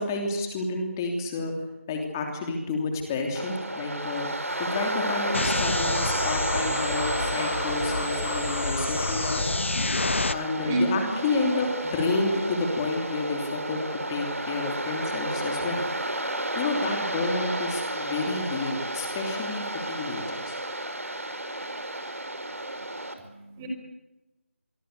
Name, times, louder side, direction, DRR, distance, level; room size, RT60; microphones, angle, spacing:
voice 1, 0.0-1.5 1.9-4.3 4.6-9.4 10.3-15.8 16.5-20.5, left 3 dB, 15° left, 3 dB, 3.1 m, -30 dB
Waves surf, 3.4-23.1, right 1 dB, 85° right, 5.1 m, -32 dB
sound 1, 5.3-10.3, left 3 dB, 60° left, 1.5 m, -28 dB
voice 2, 10.6-11.1 23.2-23.7, right 1 dB, 15° right, 1 dB, 5.5 m, -29 dB
26.0 x 24.5 x 6.7 m, 1.0 s
figure-of-eight pair, 170°, 8 cm